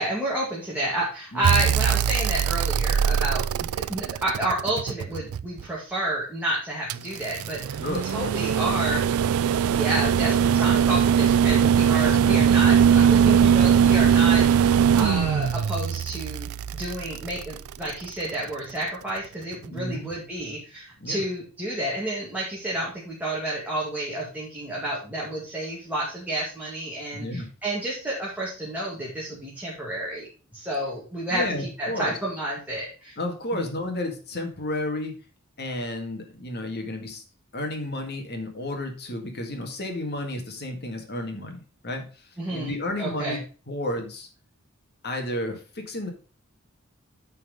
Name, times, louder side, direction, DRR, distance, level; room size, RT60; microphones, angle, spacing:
voice 1, 0.0-30.3 30.5-31.4 31.8-33.1 33.5-33.6 42.4-42.7 43.0-43.4, right 1 dB, 10° right, -6 dB, 2.2 m, -30 dB
voice 2, 1.3-1.7 7.8-8.4 12.0-12.5 19.7-20.1 21.0-21.2 27.1-27.5 31.3-32.2 33.2-35.1 35.6-37.2 37.5-44.3 45.0-46.1, left 1 dB, 50° left, 4 dB, 1.9 m, -32 dB
sound 1, 1.4-5.6 6.9-18.1 19.6-19.7, right 8 dB, 80° right, 0.4 m, -21 dB
9.3 x 4.6 x 5.1 m, 0.36 s
head